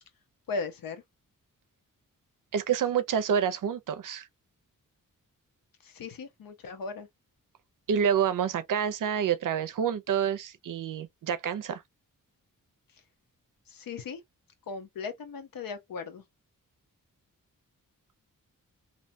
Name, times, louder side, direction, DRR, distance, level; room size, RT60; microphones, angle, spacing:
voice 1, 0.5-1.0 5.8-7.1 13.7-14.2 14.7-16.2, left 4 dB, 90° left, 0.8 m, -37 dB
voice 2, 2.5-4.3 7.9-11.8, right 8 dB, 70° right, 0.5 m, -28 dB
2.7 x 2.2 x 2.5 m
wide cardioid pair, 120°, 33 cm